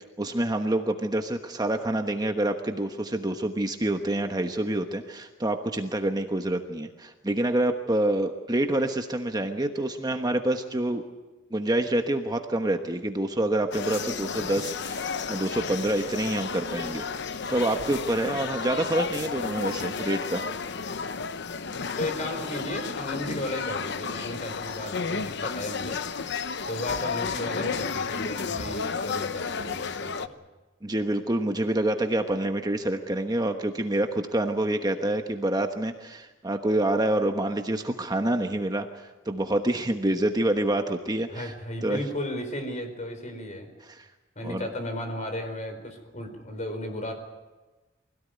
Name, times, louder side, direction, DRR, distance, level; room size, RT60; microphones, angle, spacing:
voice 1, 0.2-11.0 11.5-20.4 30.8-41.5 41.8-42.0 43.9-44.0 44.4-44.7, right 1 dB, 20° right, 5 dB, 1.2 m, -27 dB
sound 1, 13.7-30.3, left 5 dB, 60° left, 0.9 m, -32 dB
voice 2, 22.0-26.0 26.7-30.3 41.3-43.7 44.4-47.1, left 1 dB, 40° left, 6 dB, 4.5 m, -34 dB
24.5 x 17.0 x 9.5 m, 1.2 s
head